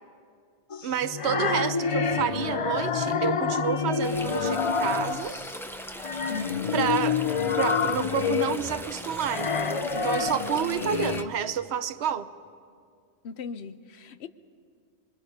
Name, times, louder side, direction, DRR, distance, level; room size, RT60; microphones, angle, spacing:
sound 1, 0.7-5.5 6.0-11.3, left 6 dB, 40° left, 0.6 m, -28 dB
voice 1, 0.8-5.4 6.7-7.3 7.6-12.3, right 9 dB, 85° right, 13 dB, 1.0 m, -29 dB
sound 2, 4.0-11.2, equal, ahead, 0.8 m, -40 dB
voice 2, 6.3-6.9 10.8-10.9 13.2-14.3, left 6 dB, 80° left, 12 dB, 1.0 m, -37 dB
26.0 x 23.0 x 5.3 m, 2.2 s
omnidirectional pair, 1.1 m